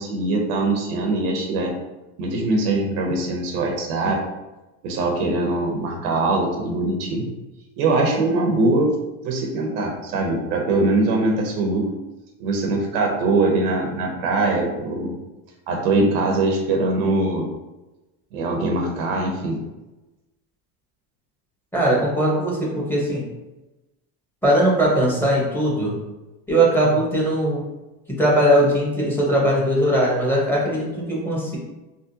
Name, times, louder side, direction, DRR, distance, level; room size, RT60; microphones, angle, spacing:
voice 1, 0.0-1.7 2.2-4.2 4.8-7.3 7.8-8.9 9.2-11.8 12.4-15.2 15.7-17.5 18.3-19.6, right 2 dB, 75° right, 1 dB, 0.8 m, -22 dB
voice 2, 21.7-23.3 24.4-26.0 26.5-27.7 28.1-31.6, right 1 dB, 5° left, -4 dB, 1.1 m, -20 dB
3.6 x 2.2 x 2.7 m, 1.0 s
supercardioid pair, 95°, 45 cm